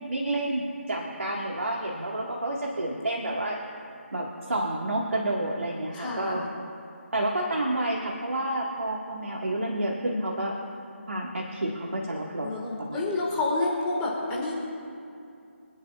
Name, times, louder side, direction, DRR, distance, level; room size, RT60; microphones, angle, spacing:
voice 1, 0.1-3.6 4.1-6.4 7.1-10.6 11.1-13.0, right 1 dB, 75° right, -2 dB, 1.8 m, -29 dB
voice 2, 5.9-6.5 12.4-14.5, left 2 dB, 15° left, -4 dB, 1.8 m, -29 dB
25.5 x 9.9 x 2.5 m, 2.6 s
figure-of-eight pair, 155°, 7 cm